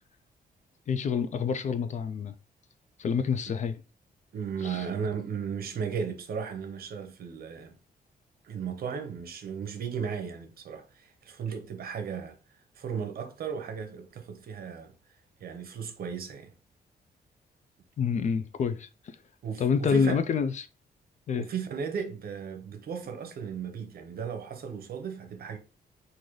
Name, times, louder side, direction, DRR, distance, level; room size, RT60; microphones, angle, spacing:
voice 1, 0.9-2.3 3.0-3.8 4.6-4.8 18.0-18.9 19.6-20.7 21.3-21.5, left 6 dB, 45° left, 0.4 m, -27 dB
voice 2, 4.3-7.8 8.4-12.4 12.8-14.9 15.4-16.5 19.4-20.2 21.4-25.6, right 6 dB, 65° right, 0.7 m, -35 dB
3.8 x 2.6 x 3.1 m
cardioid pair, 130°, 17 cm